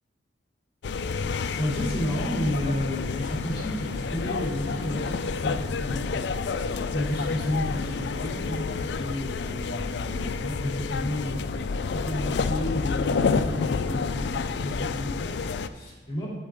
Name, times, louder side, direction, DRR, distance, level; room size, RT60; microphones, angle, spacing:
sound 1, 0.8-15.7, left 4 dB, 55° left, 0.4 m, -29 dB
voice 1, 1.6-11.5 11.9-16.3, left 1 dB, 25° left, -4 dB, 2.7 m, -32 dB
8.8 x 8.5 x 3.6 m, 1.3 s
head